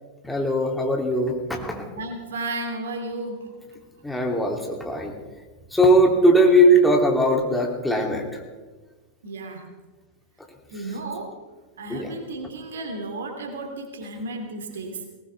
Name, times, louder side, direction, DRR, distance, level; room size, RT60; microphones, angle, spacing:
voice 1, 0.2-1.9 4.0-5.1 5.7-8.2 11.9-12.1, equal, 5° left, 0 dB, 2.9 m, -19 dB
voice 2, 1.9-3.5 9.2-9.7 10.7-11.4 11.8-15.0, right 2 dB, 65° right, 5 dB, 2.6 m, -33 dB
21.0 x 18.5 x 3.5 m, 1.3 s
figure-of-eight pair, 90°, 0 cm